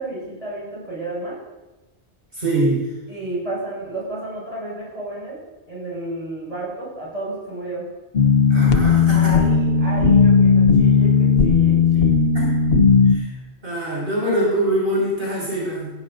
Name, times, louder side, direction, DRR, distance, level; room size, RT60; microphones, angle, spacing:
voice 1, 0.0-1.4 3.1-5.4 5.7-7.9 9.1-12.2, right 2 dB, 35° right, -5 dB, 6.0 m, -32 dB
voice 2, 2.3-2.8 8.5-9.3 12.3-12.6 13.1-13.3 13.6-15.9, right 1 dB, 60° right, -6 dB, 5.7 m, -23 dB
sound 1, 8.1-13.1, left 5 dB, 65° left, 1.2 m, -15 dB
17.0 x 16.0 x 2.6 m, 1.1 s
omnidirectional pair, 1.1 m